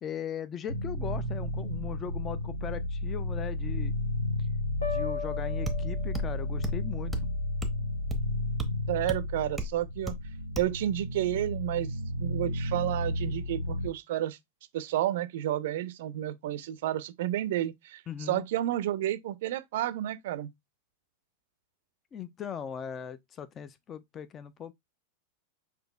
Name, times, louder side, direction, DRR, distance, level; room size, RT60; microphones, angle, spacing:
voice 1, 0.0-3.9 4.8-7.3 18.1-18.5 22.1-24.7, left 8 dB, 25° left, 0.4 m, -39 dB
sound 1, 0.7-13.9, left 1 dB, 85° left, 0.8 m, -32 dB
sound 2, 4.8-6.7, left 8 dB, 70° left, 1.3 m, -37 dB
sound 3, 5.7-5.8 6.1-6.3 6.6-6.8 7.1-7.3 7.6-7.8 8.1-8.3 8.6-8.7 9.1-9.2 9.6-9.7 10.1-10.2 10.6-10.7, right 1 dB, 5° right, 0.7 m, -34 dB
voice 2, 8.9-10.1 10.6-11.9 12.2-14.4 14.7-20.5, right 13 dB, 55° right, 0.4 m, -31 dB
6.1 x 2.7 x 2.3 m
figure-of-eight pair, 90°, 0 cm